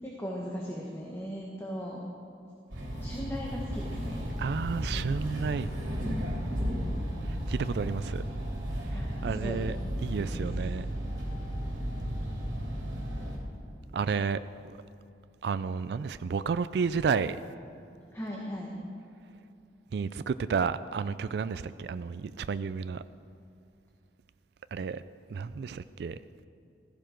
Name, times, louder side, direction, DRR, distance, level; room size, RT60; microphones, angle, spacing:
voice 1, 0.0-2.0 3.0-4.3 8.9-9.6 10.2-10.4 18.1-18.7, equal, 15° left, -3 dB, 1.4 m, -38 dB
sound 1, 2.7-13.4, equal, 90° right, 3.1 m, -34 dB
voice 2, 4.4-5.7 7.5-8.2 8.9-9.8 10.0-10.9 13.9-14.4 15.4-17.4 19.9-23.0 24.7-25.0 25.3-26.2, right 5 dB, 65° right, 13 dB, 0.3 m, -31 dB
16.0 x 15.0 x 4.5 m, 2.5 s
head